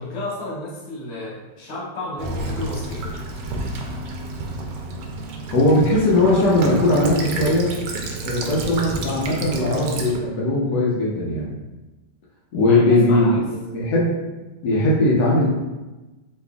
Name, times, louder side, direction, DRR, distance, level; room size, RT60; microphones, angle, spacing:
voice 1, 0.0-3.2 12.6-13.4, left 1 dB, 45° left, -6 dB, 1.1 m, -32 dB
Child speech kid speaking / Bird vocalization bird call bird song / Stream, 2.2-10.2, right 2 dB, 80° right, 1.2 m, -30 dB
voice 2, 5.5-7.8 8.2-11.5 12.5-14.1 14.6-15.5, left 1 dB, 75° left, -4 dB, 1.4 m, -19 dB
4.2 x 3.0 x 2.3 m, 1.1 s
omnidirectional pair, 1.9 m